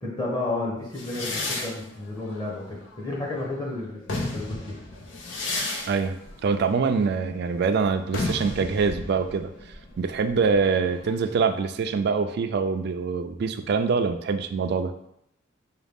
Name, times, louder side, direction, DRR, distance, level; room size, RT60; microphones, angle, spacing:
voice 1, 0.0-4.6, left 2 dB, 20° left, -4 dB, 1.0 m, -32 dB
sound 1, 0.9-3.4 3.9-11.4, left 2 dB, 80° left, 0.7 m, -34 dB
voice 2, 5.9-9.5 10.0-14.9, right 5 dB, 60° right, 8 dB, 0.3 m, -24 dB
4.8 x 2.4 x 3.5 m, 0.77 s
head